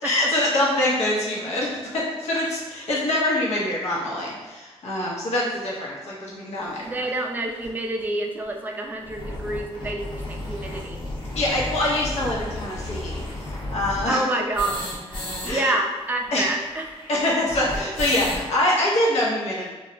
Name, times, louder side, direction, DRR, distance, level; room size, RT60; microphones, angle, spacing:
voice 1, 0.0-6.9 11.3-14.2 15.4-15.7 16.3-16.5 17.1-19.7, left 1 dB, 80° left, -5 dB, 0.7 m, -24 dB
sound 1, 6.8-6.9 7.6-7.7 8.0-8.1 8.4-8.5 8.8-15.5 15.8-15.9 16.1-18.5, left 1 dB, 45° left, 0.7 m, -33 dB
voice 2, 6.8-11.0 14.1-16.9, right 2 dB, 15° right, 1 dB, 0.3 m, -28 dB
2.3 x 2.0 x 3.7 m, 1.2 s
wide cardioid pair, 100°, 11 cm